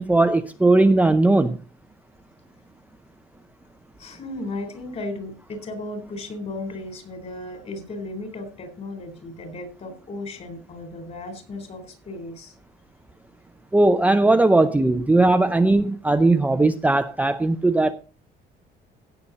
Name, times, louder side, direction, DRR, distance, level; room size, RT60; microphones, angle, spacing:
voice 1, 0.0-1.6 13.7-17.9, right 2 dB, 10° right, 0.6 m, -18 dB
voice 2, 4.0-12.5 14.2-14.3, left 2 dB, 40° left, 3.9 m, -35 dB
16.5 x 7.1 x 4.0 m
cardioid pair, 145°, 18 cm